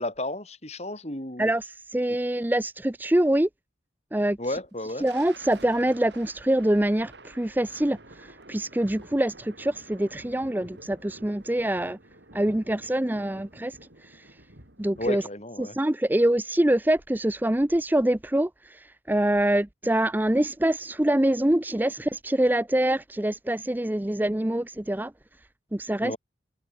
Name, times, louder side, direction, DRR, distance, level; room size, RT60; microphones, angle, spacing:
voice 1, 0.0-1.5 4.4-5.1 15.0-15.8 26.0-26.2, left 1 dB, 35° left, 4.2 m, -32 dB
voice 2, 1.4-3.5 4.1-4.4 5.0-12.0 12.3-13.8 14.1-14.2 14.8-15.2 15.6-25.1 25.7-26.1, right 1 dB, 10° right, 0.5 m, -25 dB
Thunder, 4.6-15.4, right 2 dB, 70° right, 6.2 m, -50 dB
head